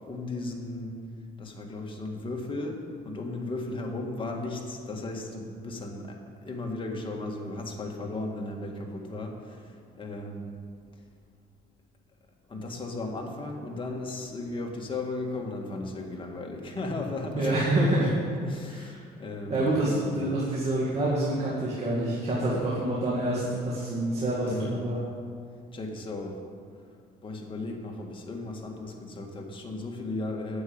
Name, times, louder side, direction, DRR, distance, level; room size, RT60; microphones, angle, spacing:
voice 1, 0.0-1.0 1.4-10.5 12.5-17.6 17.9-18.1 18.4-20.3 24.4-24.9 25.7-26.4 27.2-30.6, left 2 dB, 30° left, 1 dB, 1.9 m, -36 dB
voice 2, 17.3-18.1 18.7-18.9 19.5-25.0, right 1 dB, 40° right, -6 dB, 2.4 m, -27 dB
9.5 x 7.5 x 8.7 m, 2.2 s
cardioid pair, 110°, 17 cm